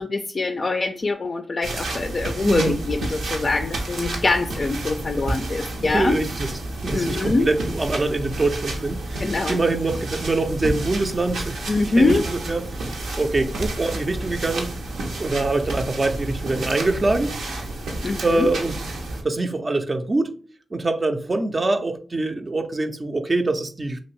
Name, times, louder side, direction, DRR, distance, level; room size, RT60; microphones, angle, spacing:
voice 1, 0.0-6.2 6.9-7.5 9.2-9.6 11.7-12.2 18.0-18.5, left 3 dB, 55° left, 5 dB, 0.3 m, -23 dB
sound 1, 1.6-19.2, right 2 dB, 90° right, 0.5 m, -30 dB
voice 2, 5.8-6.5 6.8-14.8 15.2-17.7 18.2-18.7 19.2-20.4 20.7-24.0, right 2 dB, 40° right, 6 dB, 0.4 m, -24 dB
2.8 x 2.6 x 3.0 m, 0.43 s
supercardioid pair, 45°, 0 cm